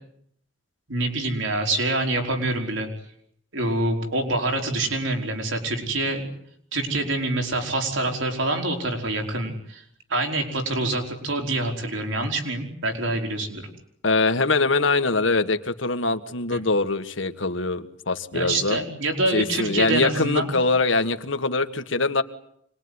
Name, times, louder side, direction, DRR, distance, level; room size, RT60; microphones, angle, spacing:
voice 1, 0.9-2.9 3.5-6.3 6.7-9.8 10.1-13.6 16.5-16.6 18.3-20.6, right 2 dB, 80° right, 3 dB, 4.9 m, -26 dB
voice 2, 14.0-18.8 19.3-22.2, left 3 dB, 80° left, 9 dB, 1.7 m, -23 dB
26.0 x 21.5 x 9.8 m, 0.70 s
head